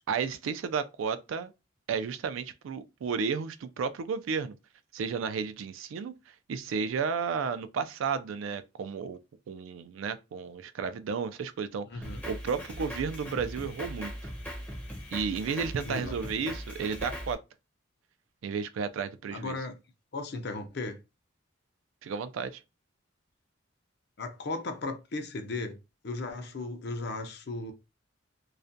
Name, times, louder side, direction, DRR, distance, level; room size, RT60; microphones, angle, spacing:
voice 1, 0.1-1.5 1.9-4.5 4.9-6.2 6.5-9.2 9.5-14.1 15.1-17.4 18.4-19.6 22.0-22.6, right 6 dB, 85° right, 0.3 m, -33 dB
voice 2, 11.9-12.2 15.8-16.5 19.3-19.8 20.1-21.0 24.2-25.8 26.0-27.7, left 2 dB, 55° left, 0.5 m, -36 dB
Drum kit, 12.0-17.3, equal, 10° left, 0.5 m, -40 dB
2.4 x 2.1 x 2.6 m
head